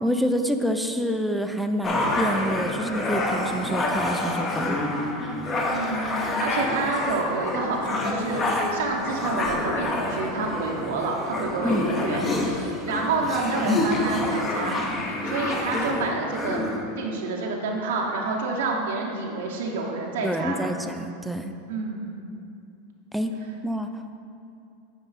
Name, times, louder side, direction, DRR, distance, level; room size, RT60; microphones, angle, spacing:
voice 1, 0.0-4.8 11.6-11.9 20.2-21.5 23.1-23.4 23.6-24.2, equal, ahead, 6 dB, 0.4 m, -27 dB
sound 1, 1.8-16.8, left 2 dB, 25° left, 0.9 m, -27 dB
voice 2, 5.7-14.8 15.1-16.6 17.0-20.7 21.7-22.2, right 3 dB, 85° right, -1 dB, 0.9 m, -28 dB
9.0 x 4.6 x 4.1 m, 2.5 s
supercardioid pair, 125°, 0 cm